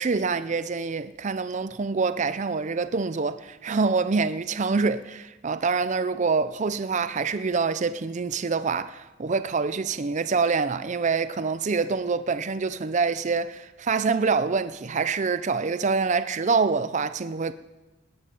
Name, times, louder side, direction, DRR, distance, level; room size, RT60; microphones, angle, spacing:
voice 1, 0.0-17.5, right 4 dB, 35° right, 0.4 m, -26 dB
19.5 x 12.0 x 5.4 m
head